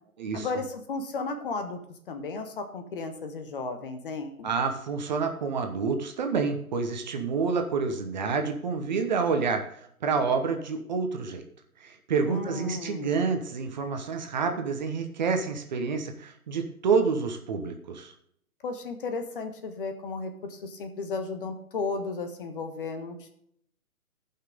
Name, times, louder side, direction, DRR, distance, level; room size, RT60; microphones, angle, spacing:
voice 1, 0.3-1.8 2.1-4.5 12.2-13.2 18.6-23.3, left 3 dB, 40° left, 6 dB, 1.3 m, -34 dB
voice 2, 4.4-9.6 10.0-11.4 11.8-18.1, right 5 dB, 30° right, 5 dB, 1.0 m, -28 dB
16.0 x 5.8 x 3.6 m, 0.68 s
figure-of-eight pair, 135°, 43 cm